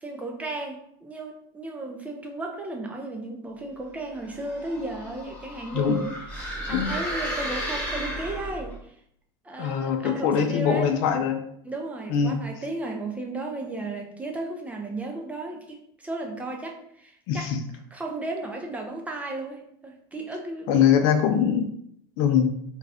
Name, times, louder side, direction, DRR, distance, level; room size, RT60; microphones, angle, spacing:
voice 1, 0.0-8.9 9.4-11.0 11.6-17.5 17.9-21.3, right 2 dB, 10° right, 1 dB, 0.4 m, -34 dB
sound 1, 4.3-8.8, equal, 10° left, 0.8 m, -33 dB
voice 2, 9.6-11.4 12.1-12.4 17.3-17.6 20.7-21.7 22.2-22.5, left 8 dB, 60° left, 6 dB, 0.4 m, -22 dB
2.5 x 2.3 x 3.3 m, 0.70 s
supercardioid pair, 140°, 13 cm